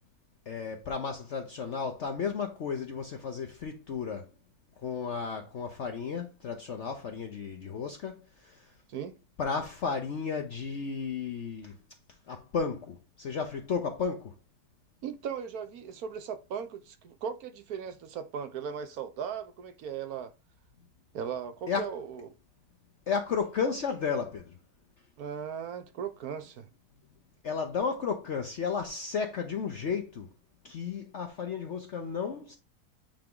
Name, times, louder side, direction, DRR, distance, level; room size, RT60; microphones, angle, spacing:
voice 1, 0.5-4.3 4.8-8.6 9.4-11.8 12.3-14.3 21.7-21.9 23.1-24.5 27.4-30.3 30.6-32.6, left 5 dB, 55° left, 1.0 m, -33 dB
voice 2, 15.0-20.3 21.1-22.3 25.2-26.7, right 7 dB, 70° right, 1.3 m, -37 dB
8.7 x 3.5 x 3.8 m
omnidirectional pair, 1.7 m